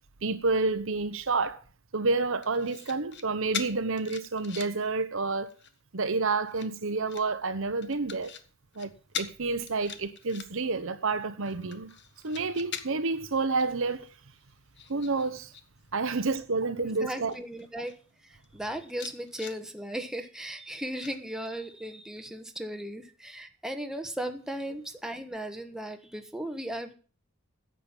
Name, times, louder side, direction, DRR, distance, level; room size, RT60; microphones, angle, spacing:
voice 1, 0.2-1.6 1.9-5.5 5.9-8.3 8.8-8.9 9.2-11.9 12.2-14.1 14.9-15.5 15.9-17.3 17.8-17.9, right 3 dB, 65° right, 1.0 m, -29 dB
sound 1, 2.4-3.2 3.5-4.9 5.3-5.8 6.4-7.2 7.8-8.4 8.7-8.9 9.1-9.3 9.7-10.8 11.2-13.1 13.6-13.7 14.1-15.6 15.9-16.3 17.0-17.1 17.3-18.0 18.4-18.5 18.9-19.6 21.0-21.7 22.2-22.3, left 8 dB, 55° left, 1.2 m, -41 dB
voice 2, 16.8-18.0 18.2-26.9, right 1 dB, 5° right, 1.2 m, -37 dB
10.5 x 7.7 x 7.3 m
head